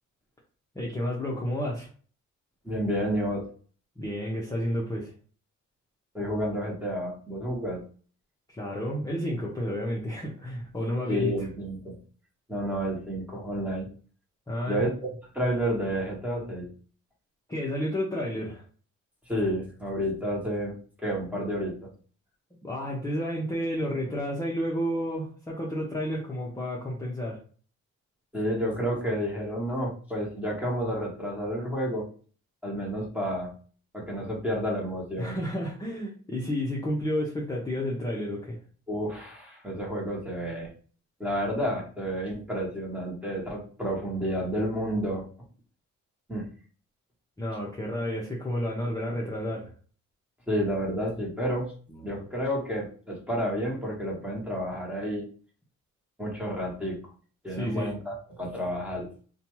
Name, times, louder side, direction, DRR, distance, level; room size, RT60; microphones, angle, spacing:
voice 1, 0.7-1.9 4.0-5.1 8.5-11.3 14.5-14.9 17.5-18.6 22.6-27.4 35.2-38.6 47.4-49.7 52.0-52.2 57.5-57.9, equal, 10° left, -4 dB, 0.7 m, -31 dB
voice 2, 2.6-3.5 6.1-7.8 11.1-12.0 12.5-13.9 14.7-16.7 19.3-21.9 28.3-32.1 32.6-33.5 33.9-35.4 38.9-40.7 41.2-45.2 46.3-46.5 50.5-51.7 52.0-55.2 56.2-57.0 57.4-59.1, equal, 5° right, -2 dB, 1.1 m, -30 dB
2.7 x 2.3 x 3.0 m, 0.42 s
cardioid pair, 90°, 30 cm